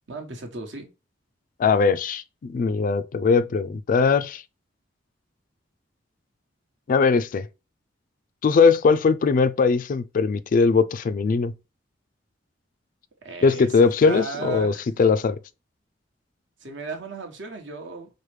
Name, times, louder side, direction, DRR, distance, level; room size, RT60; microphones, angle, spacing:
voice 1, 0.1-0.9 13.2-14.9 16.6-18.1, right 3 dB, 70° right, 1.2 m, -35 dB
voice 2, 1.6-4.4 6.9-7.5 8.4-11.5 13.4-15.4, left 5 dB, 45° left, 0.3 m, -20 dB
4.7 x 2.1 x 3.2 m
head